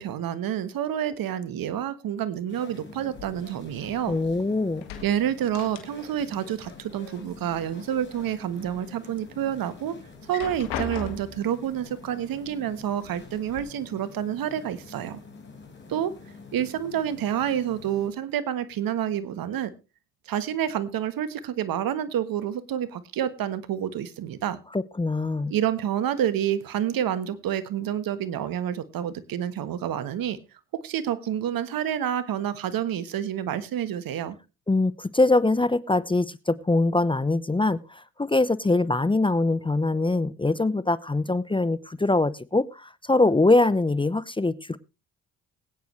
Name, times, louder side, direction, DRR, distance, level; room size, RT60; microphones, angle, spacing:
voice 1, 0.0-4.2 5.0-10.0 10.3-15.2 15.9-16.1 16.5-19.7 20.3-24.6 25.5-30.4 30.8-34.4, right 10 dB, 65° right, 14 dB, 1.4 m, -28 dB
sound 1, 2.5-18.1, left 4 dB, 30° left, 5.1 m, -47 dB
sound 2, 3.1-4.4 4.7-6.3 6.6-7.6 8.0-8.8 9.3-9.4 10.1-11.5 12.5-12.6 13.0-13.6, left 6 dB, 85° left, 1.8 m, -38 dB
voice 2, 4.1-4.9 24.7-25.5 34.7-44.8, left 2 dB, 15° left, 18 dB, 0.7 m, -23 dB
21.0 x 9.2 x 3.2 m, 0.29 s
supercardioid pair, 60°, 37 cm